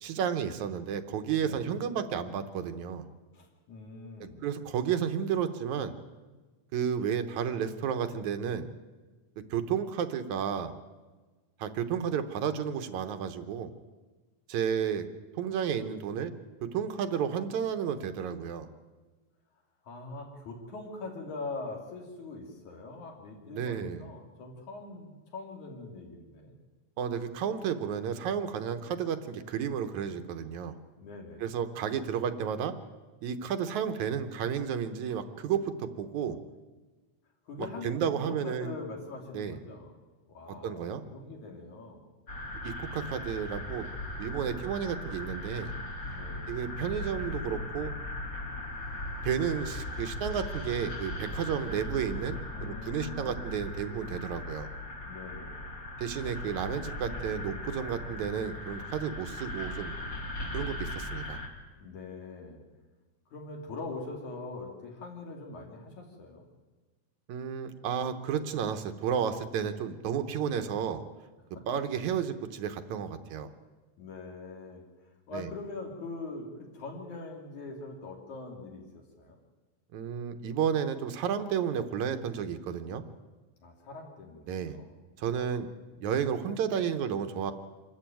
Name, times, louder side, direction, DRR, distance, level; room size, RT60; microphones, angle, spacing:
voice 1, 0.0-3.1 4.4-5.9 6.7-8.7 9.5-10.7 11.6-13.7 14.5-15.1 15.4-16.3 16.6-18.7 23.5-24.0 27.0-30.8 31.4-32.8 33.2-36.4 37.6-38.8 39.3-39.6 40.6-41.0 42.6-43.9 44.2-45.7 46.5-47.9 49.2-54.7 56.0-59.9 60.5-61.4 67.3-71.0 71.7-73.5 75.3-75.5 79.9-83.0 84.5-84.8 85.2-85.7 86.0-87.5, right 8 dB, 75° right, 8 dB, 2.4 m, -32 dB
voice 2, 3.3-4.4 19.8-26.6 31.0-31.5 37.5-39.9 40.3-42.0 44.4-44.6 46.1-46.5 52.5-53.4 55.0-55.7 61.8-62.6 63.3-66.5 71.5-71.6 74.0-74.8 75.3-76.5 76.7-79.4 83.6-84.9, left 3 dB, 70° left, 1 dB, 4.4 m, -42 dB
sound 1, 42.3-61.5, left 1 dB, 40° left, 3.2 m, -38 dB
26.0 x 13.5 x 9.2 m, 1.3 s
omnidirectional pair, 3.5 m